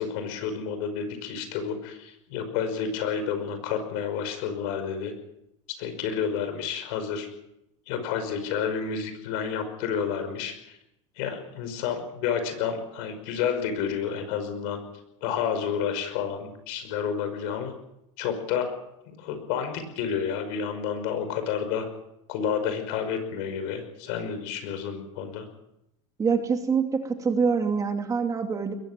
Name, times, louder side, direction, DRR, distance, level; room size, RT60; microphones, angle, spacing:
voice 1, 0.0-5.1 5.8-7.3 7.9-10.8 11.2-14.8 15.2-17.7 18.2-18.7 19.0-21.9 22.3-25.5, left 7 dB, 60° left, 8 dB, 5.5 m, -30 dB
voice 2, 26.2-28.7, right 5 dB, 20° right, 5 dB, 2.6 m, -25 dB
21.5 x 14.5 x 9.2 m, 0.84 s
supercardioid pair, 125°, 17 cm